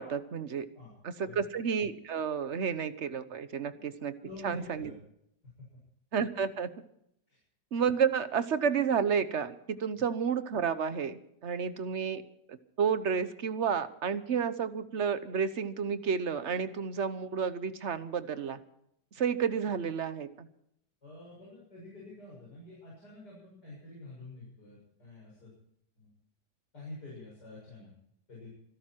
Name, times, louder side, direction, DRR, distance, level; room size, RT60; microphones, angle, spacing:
voice 1, 0.0-0.7 1.0-4.1 4.4-4.9 6.1-6.7 7.7-12.2 12.5-18.6 19.2-20.5, right 6 dB, 45° right, 13 dB, 1.2 m, -31 dB
voice 2, 4.1-4.9 5.4-5.7 7.3-7.4 21.0-25.5 26.0-26.1 26.7-27.9 28.3-28.5, left 2 dB, 70° left, -5 dB, 7.6 m, -48 dB
25.5 x 12.5 x 4.5 m, 0.76 s
omnidirectional pair, 1.8 m